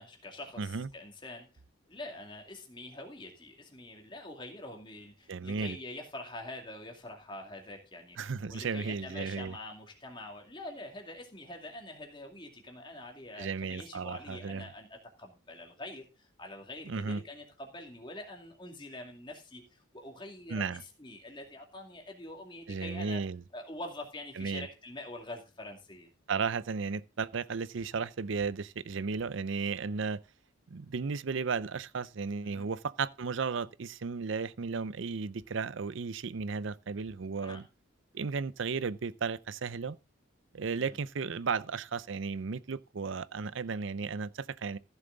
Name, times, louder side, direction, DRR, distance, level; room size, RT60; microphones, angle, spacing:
voice 1, 0.0-1.5 1.9-8.2 8.5-23.2 23.5-26.1 32.4-32.7 37.4-37.6 40.7-41.0, left 1 dB, 25° left, 2.4 m, -45 dB
voice 2, 0.6-0.9 5.3-5.8 8.2-9.5 13.4-14.7 16.9-17.2 20.5-20.8 22.7-23.4 24.4-24.7 26.3-30.2 30.7-37.6 38.1-40.0 40.5-44.8, right 5 dB, 60° right, 0.5 m, -34 dB
14.5 x 7.1 x 3.9 m
head